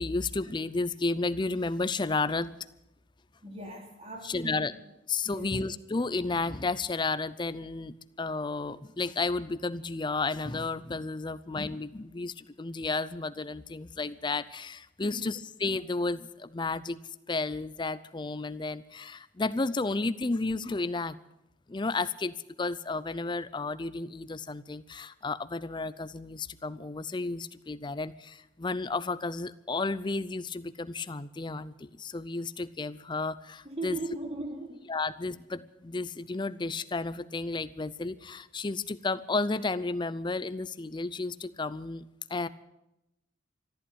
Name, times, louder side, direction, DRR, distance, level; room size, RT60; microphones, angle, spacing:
voice 1, 0.0-2.5 4.2-4.7 5.1-17.0 17.3-21.2 21.7-34.0 34.9-42.0 42.3-42.5, left 3 dB, 25° left, 16 dB, 0.5 m, -32 dB
voice 2, 3.4-4.7 5.2-5.6 15.0-15.3 33.6-34.9, right 2 dB, 30° right, 1 dB, 3.2 m, -39 dB
14.0 x 11.5 x 9.2 m, 0.91 s
head